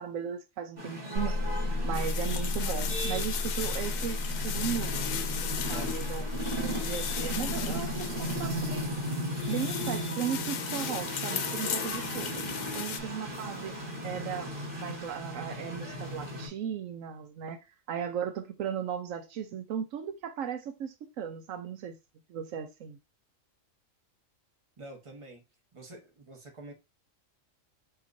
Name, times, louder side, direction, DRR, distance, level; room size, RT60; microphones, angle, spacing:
voice 1, 0.0-1.4 1.8-5.1 5.4-6.2 6.6-8.9 9.5-12.5 12.7-13.8 14.0-22.0 22.3-23.0, right 8 dB, 80° right, 1.0 m, -36 dB
sound 1, 0.8-16.5, equal, 40° right, 2.4 m, -36 dB
sound 2, 1.1-9.0, left 2 dB, 65° right, 1.9 m, -34 dB
sound 3, 1.9-13.0, left 9 dB, 90° left, 1.0 m, -37 dB
voice 2, 5.7-6.3 12.7-13.1 24.8-25.4 25.7-26.7, right 2 dB, 25° right, 1.3 m, -48 dB
5.7 x 2.9 x 2.6 m
omnidirectional pair, 1.3 m